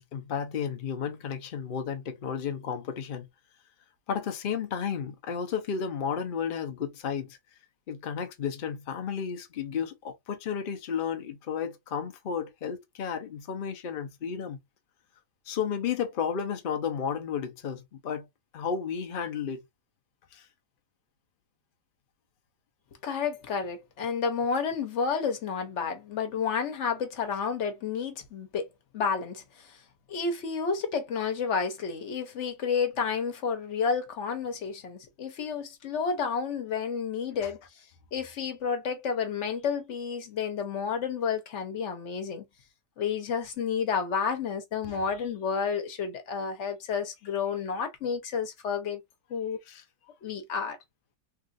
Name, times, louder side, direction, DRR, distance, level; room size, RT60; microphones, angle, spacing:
voice 1, 0.0-3.3 4.1-7.4 7.9-14.6 15.5-18.3 18.5-19.6 20.3-20.5 44.9-45.0 49.7-49.8, left 7 dB, 90° left, 0.4 m, -33 dB
voice 2, 23.0-28.7 28.9-29.8 30.1-37.6 38.1-42.4 43.0-49.0 49.3-49.6 50.2-50.8, left 6 dB, 55° left, 1.0 m, -30 dB
3.5 x 2.4 x 2.5 m
omnidirectional pair, 1.7 m